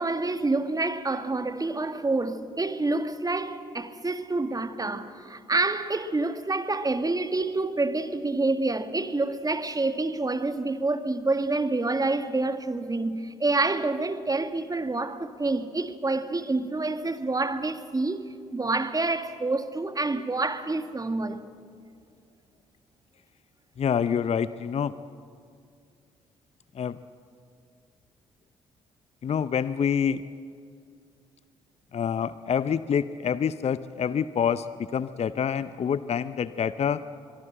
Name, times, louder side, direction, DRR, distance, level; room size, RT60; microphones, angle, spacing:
voice 1, 0.0-18.2 18.5-21.4, right 2 dB, 20° right, 1.6 m, -27 dB
voice 2, 23.8-24.9 26.7-27.0 29.2-30.2 31.9-34.7 34.9-37.0, left 7 dB, 40° left, 0.6 m, -26 dB
23.0 x 23.0 x 7.8 m
figure-of-eight pair, 40°, 16 cm